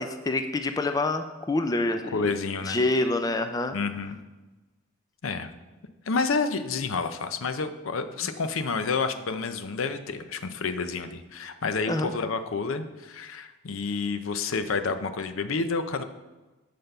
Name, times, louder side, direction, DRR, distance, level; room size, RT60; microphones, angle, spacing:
voice 1, 0.0-2.2 2.7-3.8 11.9-12.1, left 2 dB, 20° left, 7 dB, 0.4 m, -26 dB
voice 2, 2.1-2.8 3.7-4.2 5.2-5.5 6.1-16.0, left 4 dB, 70° left, 10 dB, 0.6 m, -29 dB
7.9 x 5.1 x 5.4 m, 1.2 s
head